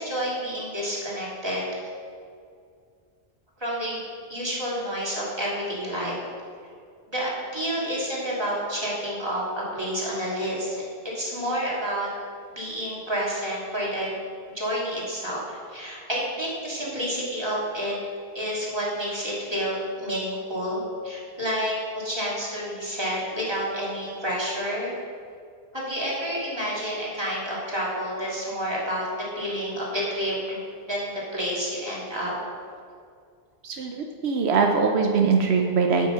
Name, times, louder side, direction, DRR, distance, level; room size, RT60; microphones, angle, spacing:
voice 1, 0.0-1.6 3.6-4.0 4.3-6.1 7.1-10.8 11.1-12.1 12.5-14.1 14.5-18.0 18.3-25.0 25.7-29.1 29.3-32.3, equal, 25° right, -6 dB, 2.6 m, -29 dB
voice 2, 33.6-36.1, right 5 dB, 80° right, 3 dB, 1.0 m, -22 dB
8.4 x 7.7 x 5.6 m, 2.2 s
omnidirectional pair, 1.1 m